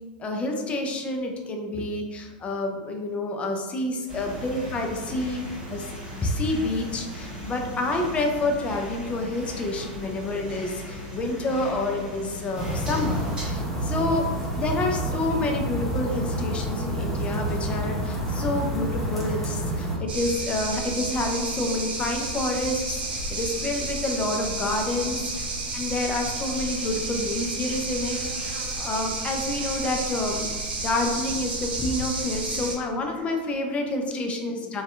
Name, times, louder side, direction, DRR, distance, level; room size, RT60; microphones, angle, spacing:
voice 1, 0.2-5.4 5.7-5.9 6.1-14.2 14.5-25.5 25.7-30.5 30.8-34.8, left 2 dB, 25° left, 2 dB, 0.4 m, -28 dB
sound 1, 4.1-13.5, equal, 20° right, 1.2 m, -38 dB
sound 2, 12.5-20.0, right 1 dB, 5° left, 0.8 m, -28 dB
sound 3, 20.1-32.8, right 2 dB, 85° right, 0.5 m, -31 dB
2.6 x 2.2 x 2.3 m, 1.3 s
hypercardioid pair, 110°, 5 cm